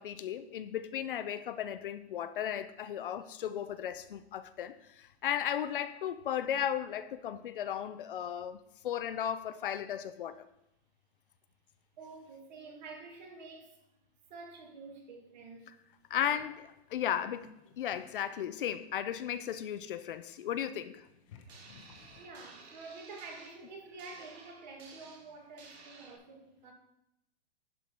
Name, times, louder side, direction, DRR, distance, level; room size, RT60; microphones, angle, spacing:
voice 1, 0.0-10.4 16.1-21.0, left 10 dB, 55° left, 12 dB, 0.6 m, -35 dB
voice 2, 12.0-13.8 14.3-15.7 16.1-16.3 22.2-26.7, right 3 dB, 45° right, 3 dB, 1.9 m, -49 dB
sound 1, 15.8-22.3, left 6 dB, 30° left, 0.9 m, -60 dB
sound 2, 21.5-26.2, right 4 dB, 80° right, 2.0 m, -55 dB
11.0 x 4.7 x 5.3 m, 0.83 s
hypercardioid pair, 175°, 32 cm